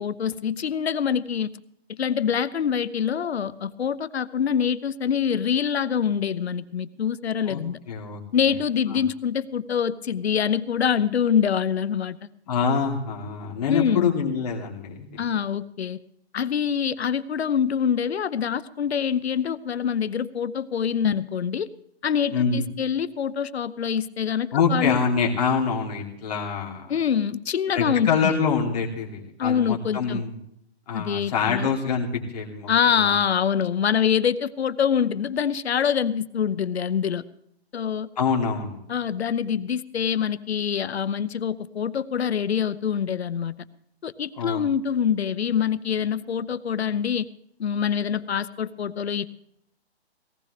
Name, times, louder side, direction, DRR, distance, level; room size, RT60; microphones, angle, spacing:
voice 1, 0.0-1.5 1.9-7.8 8.3-12.3 13.7-14.1 15.2-16.0 16.3-21.7 22.0-25.0 26.9-28.3 29.4-30.2 30.9-31.7 32.7-37.2 37.7-38.1 38.9-43.5 44.0-47.3 47.6-49.3, left 8 dB, 75° left, 15 dB, 0.9 m, -25 dB
voice 2, 7.9-8.2 8.9-9.0 12.5-15.2 22.3-22.6 24.5-26.9 27.7-30.4 30.9-33.2 38.2-38.8 44.3-44.6, left 5 dB, 40° left, -2 dB, 3.0 m, -25 dB
18.0 x 16.0 x 3.4 m, 0.74 s
hypercardioid pair, 170°, 32 cm